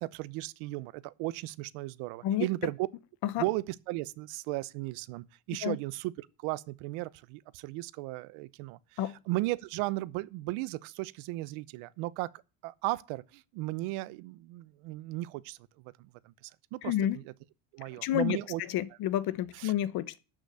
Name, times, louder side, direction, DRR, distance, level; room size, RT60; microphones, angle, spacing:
voice 1, 0.0-2.9 3.4-9.0 9.3-12.3 12.6-17.2 17.7-18.6 19.5-19.7, right 19 dB, 85° right, 0.9 m, -36 dB
voice 2, 16.8-17.2 18.0-18.4 18.7-20.2, left 12 dB, 50° left, 0.9 m, -29 dB
13.0 x 6.1 x 8.1 m
cardioid pair, 170°, 49 cm